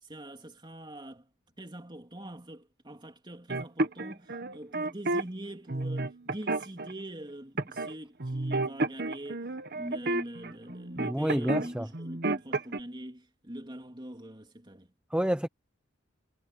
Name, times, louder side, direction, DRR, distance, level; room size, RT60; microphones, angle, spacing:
voice 1, 0.0-1.3 1.6-9.5 9.7-14.9, right 1 dB, 20° right, 3.1 m, -43 dB
sound 1, 3.5-5.2 5.7-6.9 7.6-7.9 8.2-11.7 11.9-12.8, right 2 dB, 50° right, 1.3 m, -31 dB
voice 2, 11.0-11.9 15.1-15.5, equal, 5° right, 0.6 m, -29 dB
head